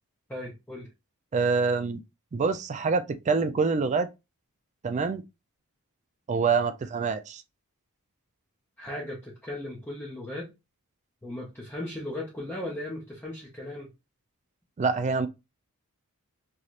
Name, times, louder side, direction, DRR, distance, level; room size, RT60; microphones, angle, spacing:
voice 1, 0.3-0.9 8.8-10.5 11.2-13.9, left 1 dB, 10° left, 0.7 m, -37 dB
voice 2, 1.3-2.0 2.3-4.1 4.8-5.2 6.3-7.4 14.8-15.3, right 4 dB, 30° right, 0.3 m, -26 dB
3.1 x 2.8 x 2.4 m
head